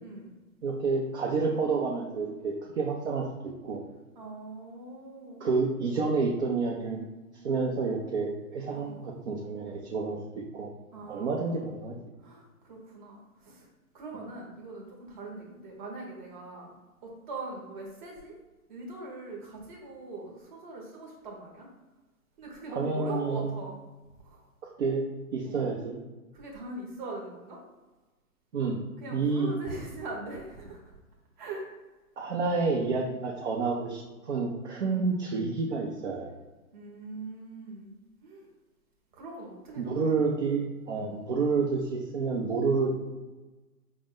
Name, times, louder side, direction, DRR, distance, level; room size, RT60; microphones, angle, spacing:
voice 1, 0.0-0.3 4.1-5.5 8.7-9.0 10.9-11.6 12.2-13.7 13.9-16.7 17.0-18.3 18.7-21.7 22.4-23.8 24.2-24.4 25.4-25.6 26.3-27.6 29.0-30.8 31.4-31.7 34.9-35.1 36.7-37.9 38.2-38.5 39.1-40.1 40.9-41.1, right 2 dB, 30° right, -1 dB, 0.9 m, -41 dB
voice 2, 0.6-3.8 5.4-7.0 7.4-10.7 11.1-11.9 22.7-23.5 24.8-25.1 25.3-26.0 28.5-28.8 29.1-29.5 32.2-36.3 39.8-42.9, right 4 dB, 50° right, -3 dB, 0.6 m, -29 dB
4.9 x 2.1 x 3.6 m, 1.1 s
hypercardioid pair, 150°, 46 cm